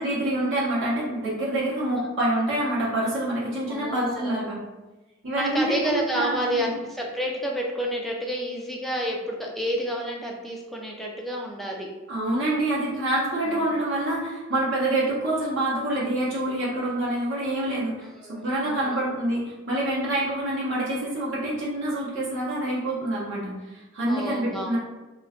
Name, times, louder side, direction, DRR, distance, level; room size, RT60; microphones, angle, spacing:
voice 1, 0.0-4.6 5.2-6.7 12.1-24.8, right 1 dB, 60° right, -6 dB, 0.8 m, -26 dB
voice 2, 3.7-4.5 5.3-11.9 13.4-13.7 18.2-19.0 24.1-24.8, equal, ahead, -1 dB, 0.3 m, -30 dB
2.3 x 2.2 x 3.5 m, 1.1 s
head